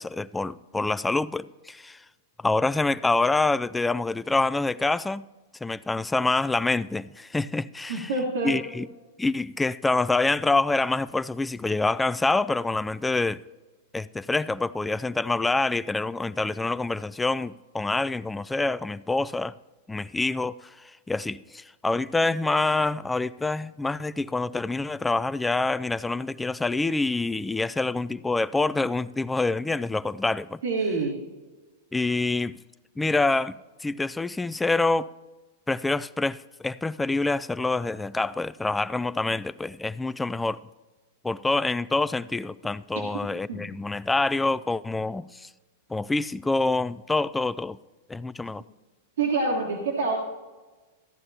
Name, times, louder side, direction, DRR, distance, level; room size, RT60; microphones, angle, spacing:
voice 1, 0.0-2.0 2.4-5.2 5.6-8.1 8.4-8.9 9.2-13.4 13.9-19.5 19.9-20.5 21.1-30.6 31.9-32.6 33.0-33.6 33.8-35.1 35.7-40.6 41.2-45.5 45.9-47.8 48.1-48.6, left 3 dB, 10° left, 0.3 m, -26 dB
voice 2, 7.9-8.5 30.6-31.1 42.9-43.0 43.5-43.7 49.2-50.2, right 3 dB, 75° right, 1.6 m, -26 dB
15.0 x 10.5 x 2.8 m
hypercardioid pair, 110°, 0 cm